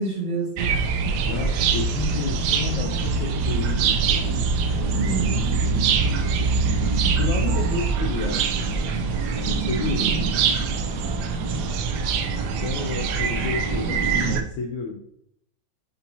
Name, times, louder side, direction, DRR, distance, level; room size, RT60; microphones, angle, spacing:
voice 1, 0.0-1.2 5.0-5.4 10.0-10.3 11.4-11.6, right 3 dB, 50° right, -5 dB, 2.2 m, -29 dB
sound 1, 0.6-14.4, right 5 dB, 75° right, 1.0 m, -23 dB
voice 2, 1.3-4.3 4.8-5.4 7.2-9.1 9.3-10.2 12.6-15.0, left 5 dB, 75° left, 2 dB, 1.2 m, -31 dB
6.9 x 2.7 x 2.8 m, 0.72 s
omnidirectional pair, 2.2 m